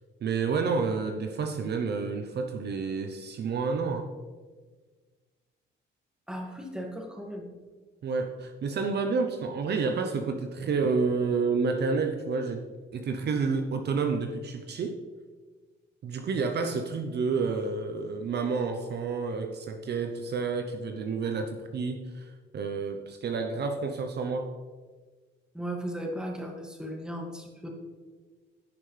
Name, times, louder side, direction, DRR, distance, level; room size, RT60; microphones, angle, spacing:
voice 1, 0.2-4.1 8.0-12.6 12.9-15.0 16.0-24.5, right 4 dB, 55° right, 6 dB, 0.8 m, -29 dB
voice 2, 6.3-7.5 25.5-27.7, equal, 5° right, 0 dB, 2.1 m, -36 dB
16.0 x 5.7 x 3.3 m, 1.4 s
cardioid pair, 90°, 20 cm